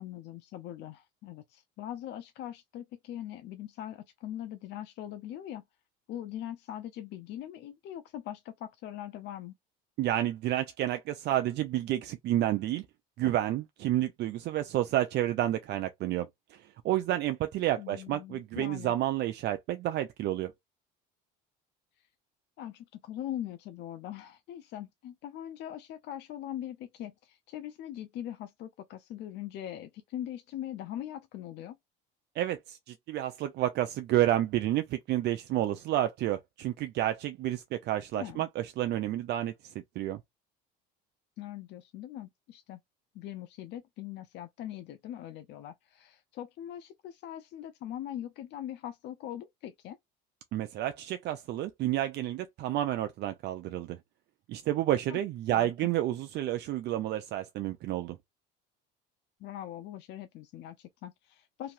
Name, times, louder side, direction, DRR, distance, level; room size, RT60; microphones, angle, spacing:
voice 1, 0.0-5.6 6.1-9.5 17.8-18.9 22.0-22.1 22.6-31.8 38.1-38.5 41.4-42.8 43.1-50.0 55.1-55.2 55.5-55.7 59.4-61.7, left 11 dB, 55° left, 0.4 m, -41 dB
voice 2, 10.0-12.9 13.2-16.3 16.5-20.5 32.4-40.2 50.5-54.0 54.5-58.2, right 13 dB, 55° right, 0.4 m, -30 dB
2.9 x 2.7 x 2.4 m
supercardioid pair, 100°, 21 cm